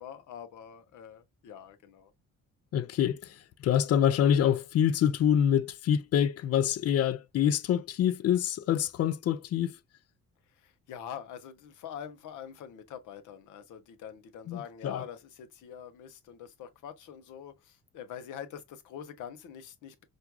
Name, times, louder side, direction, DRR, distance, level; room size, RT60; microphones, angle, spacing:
voice 1, 0.0-2.1 10.5-20.0, left 8 dB, 90° left, 0.8 m, -44 dB
voice 2, 2.7-9.8 14.5-15.0, left 9 dB, 55° left, 0.5 m, -26 dB
4.5 x 2.5 x 2.2 m
cardioid pair, 90°, 30 cm